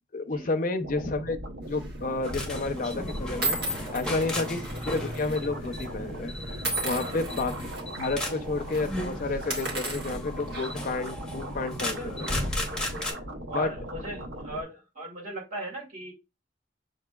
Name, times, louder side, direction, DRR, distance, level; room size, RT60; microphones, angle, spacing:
voice 1, 0.1-12.3 13.5-13.7, left 3 dB, 50° left, 0.5 m, -31 dB
sound 1, 0.8-14.6, right 1 dB, 85° right, 0.8 m, -39 dB
sound 2, 1.7-2.0 2.8-2.9 3.4-5.4 5.6-5.8 6.6-7.8 8.2-8.4 8.7-8.9 9.4-10.9, right 2 dB, 65° right, 1.5 m, -34 dB
sound 3, 2.2-13.1, left 1 dB, 5° left, 0.9 m, -36 dB
voice 2, 7.0-7.3 11.8-13.2 13.5-16.1, right 1 dB, 45° right, 2.1 m, -39 dB
6.7 x 2.7 x 2.3 m
head